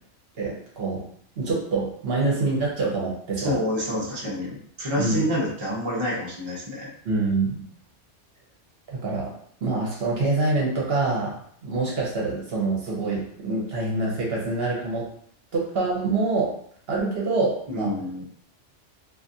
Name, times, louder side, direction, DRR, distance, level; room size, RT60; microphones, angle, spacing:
voice 1, 0.3-1.0 1.4-3.6 5.0-5.2 7.0-7.6 8.9-9.3 9.6-15.1 15.5-16.5 16.9-17.9, right 3 dB, 60° right, -3 dB, 0.9 m, -25 dB
voice 2, 3.4-6.9 17.7-18.2, equal, 30° right, -5 dB, 0.6 m, -28 dB
2.5 x 2.5 x 2.6 m, 0.62 s
omnidirectional pair, 1.3 m